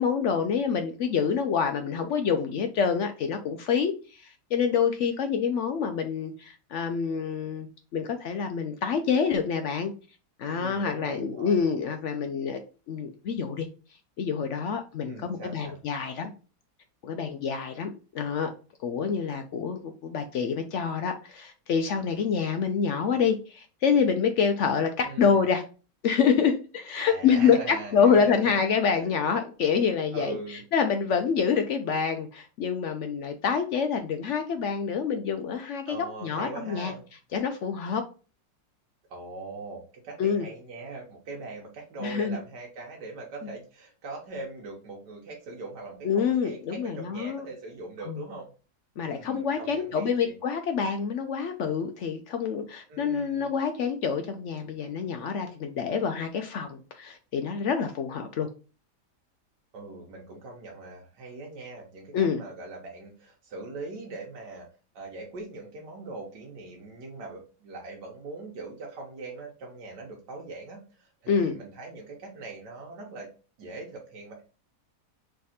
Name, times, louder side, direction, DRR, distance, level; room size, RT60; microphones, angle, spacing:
voice 1, 0.0-7.7 7.9-9.9 10.4-12.6 12.9-13.7 14.2-16.3 17.0-18.5 18.8-25.6 26.0-36.9 37.3-38.0 40.2-40.5 42.0-42.4 46.0-47.5 48.1-48.2 49.0-58.5 62.1-62.4 71.3-71.5, left 6 dB, 75° left, 7 dB, 0.6 m, -27 dB
voice 2, 10.4-11.6 15.1-15.8 25.0-25.5 27.0-28.6 28.9-29.1 30.1-30.6 35.9-37.0 39.1-48.5 49.1-50.3 52.9-53.5 59.7-64.7 64.9-73.3 73.6-74.4, right 2 dB, 90° right, -1 dB, 1.6 m, -41 dB
3.5 x 3.3 x 4.0 m, 0.35 s
omnidirectional pair, 1.8 m